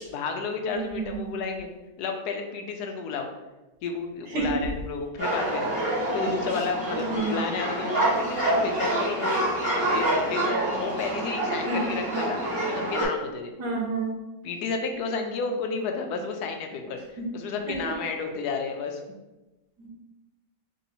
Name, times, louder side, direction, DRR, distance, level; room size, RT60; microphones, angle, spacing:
voice 1, 0.1-1.7 2.0-3.3 3.8-5.8 6.1-13.5 14.4-19.0, left 4 dB, 70° left, 4 dB, 1.0 m, -32 dB
voice 2, 0.7-1.4 4.3-4.4 6.9-7.4 11.6-12.1 13.6-14.1 17.8-17.9 19.8-19.9, right 3 dB, 70° right, -1 dB, 1.2 m, -30 dB
sound 1, 5.2-13.1, right 1 dB, 10° right, 1.1 m, -27 dB
3.4 x 2.8 x 4.0 m, 1.1 s
omnidirectional pair, 1.9 m